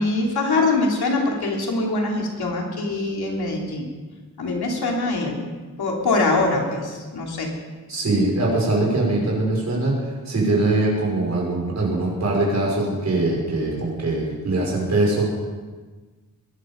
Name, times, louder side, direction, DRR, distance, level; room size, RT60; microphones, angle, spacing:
voice 1, 0.0-3.9 4.4-5.4 5.8-7.5, left 2 dB, 90° left, -1 dB, 3.3 m, -23 dB
voice 2, 7.9-10.0 10.3-15.2, right 2 dB, 45° right, -3 dB, 5.6 m, -22 dB
22.0 x 11.0 x 5.2 m, 1.4 s
wide cardioid pair, 165°, 37 cm